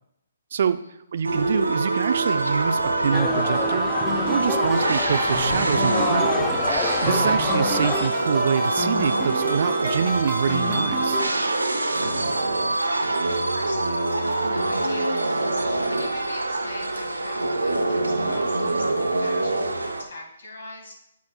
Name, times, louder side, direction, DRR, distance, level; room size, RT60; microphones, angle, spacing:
voice 1, 0.5-0.8 1.1-6.5 7.0-11.2, right 7 dB, 55° right, 13 dB, 0.4 m, -25 dB
sound 1, 1.2-20.0, right 2 dB, 80° right, 0.8 m, -24 dB
sound 2, 3.1-8.1, left 5 dB, 20° left, 0.7 m, -29 dB
sound 3, 4.0-11.3, equal, 5° right, 1.8 m, -31 dB
voice 2, 13.3-18.8 19.2-21.0, left 2 dB, 65° left, 1 dB, 2.1 m, -42 dB
8.7 x 8.1 x 2.3 m, 0.78 s
figure-of-eight pair, 130°, 0 cm